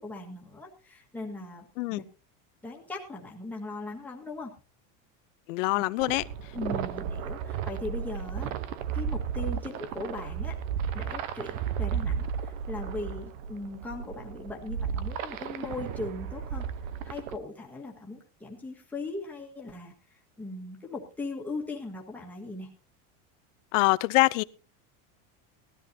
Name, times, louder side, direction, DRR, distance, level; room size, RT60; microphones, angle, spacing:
voice 1, 0.0-2.0 2.6-4.5 5.7-5.8 6.5-8.5 8.9-10.6 10.9-16.6 17.0-19.9 20.4-22.7, left 2 dB, 5° left, 1.7 m, -39 dB
voice 2, 5.5-6.2 23.7-24.4, left 22 dB, 70° left, 0.7 m, -24 dB
sound 1, 6.0-17.4, right 8 dB, 80° right, 1.1 m, -34 dB
18.5 x 13.0 x 2.8 m
cardioid pair, 180°, 40 cm